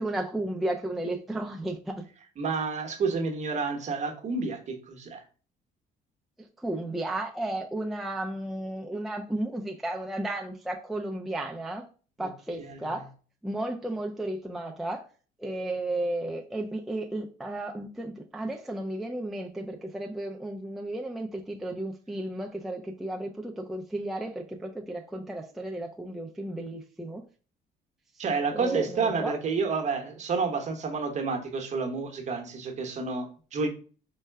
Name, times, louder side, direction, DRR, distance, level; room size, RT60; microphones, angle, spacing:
voice 1, 0.0-2.1 6.4-11.9 12.2-13.1 13.4-15.0 15.4-27.2 28.5-29.3, right 1 dB, ahead, 0.4 m, -33 dB
voice 2, 2.4-5.2 12.2-12.3 12.6-12.9 28.2-33.7, right 4 dB, 45° right, 0.9 m, -30 dB
4.6 x 2.1 x 3.3 m
cardioid pair, 110°, 17 cm